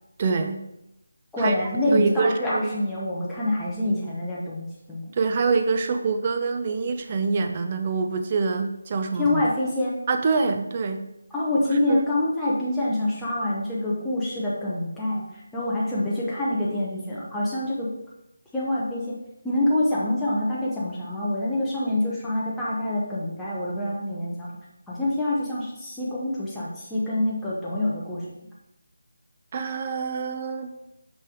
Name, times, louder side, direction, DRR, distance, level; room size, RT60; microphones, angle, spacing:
voice 1, 0.2-0.6 1.4-1.5 1.9-2.7 5.1-9.4 10.1-11.0 11.9-12.0 29.5-30.7, right 4 dB, 30° right, 6 dB, 0.5 m, -25 dB
voice 2, 1.3-5.0 9.2-10.0 11.3-17.9 18.5-19.2 19.4-24.5 24.9-28.2, left 1 dB, 5° left, -9 dB, 0.8 m, -26 dB
5.5 x 5.3 x 3.5 m, 0.87 s
figure-of-eight pair, 165°, 0 cm